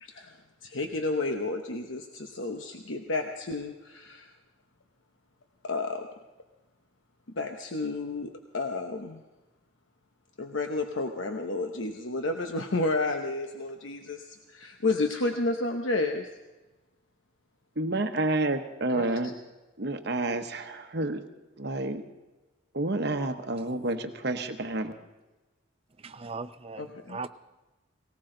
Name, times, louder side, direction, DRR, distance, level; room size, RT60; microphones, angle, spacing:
voice 1, 0.0-4.3 5.6-6.1 7.3-9.2 10.4-16.3 18.9-19.0 26.8-27.3, left 2 dB, 75° left, 4 dB, 1.0 m, -31 dB
voice 2, 17.8-19.3 19.8-21.2 21.6-22.0 22.7-24.9, right 2 dB, 55° right, 6 dB, 1.0 m, -29 dB
voice 3, 26.0-27.3, right 4 dB, 30° right, 10 dB, 0.5 m, -39 dB
18.5 x 18.0 x 3.9 m, 1.1 s
head